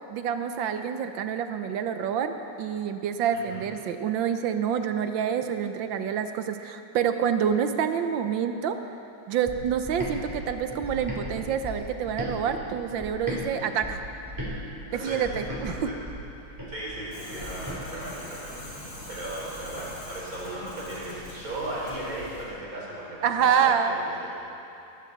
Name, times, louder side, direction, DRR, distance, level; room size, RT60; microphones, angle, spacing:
voice 1, 0.1-8.8 9.3-14.0 14.9-15.9 23.2-24.0, right 8 dB, 75° right, 8 dB, 1.4 m, -27 dB
voice 2, 3.3-3.6 14.9-15.2 15.5-15.9 16.4-18.5 19.1-24.3, right 1 dB, 45° right, -6 dB, 4.6 m, -36 dB
sound 1, 9.5-13.4 13.8-17.8, equal, 10° right, 3.1 m, -37 dB
sound 2, 17.1-22.4, left 1 dB, 85° left, 4.7 m, -42 dB
20.0 x 14.5 x 4.0 m, 2.8 s
omnidirectional pair, 2.1 m